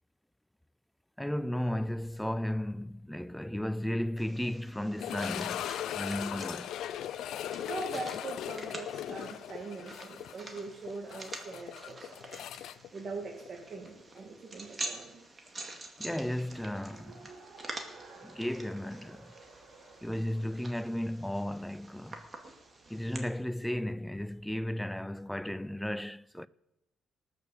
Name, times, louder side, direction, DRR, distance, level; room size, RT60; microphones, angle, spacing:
voice 1, 1.2-6.7 16.0-17.3 18.2-19.3 20.0-22.2 22.9-26.5, left 1 dB, 5° left, 0.4 m, -34 dB
sound 1, 4.2-23.2, right 2 dB, 30° right, 2.3 m, -47 dB
sound 2, 5.0-13.9 14.2-14.3 14.9-15.0 17.6-17.7, left 11 dB, 80° left, 0.4 m, -39 dB
voice 2, 7.6-12.4 12.9-15.2, right 3 dB, 50° right, 2.4 m, -42 dB
Race car auto racing, 16.5-25.6, right 4 dB, 90° right, 4.3 m, -57 dB
18.5 x 6.7 x 7.0 m
cardioid pair, 90°, 0 cm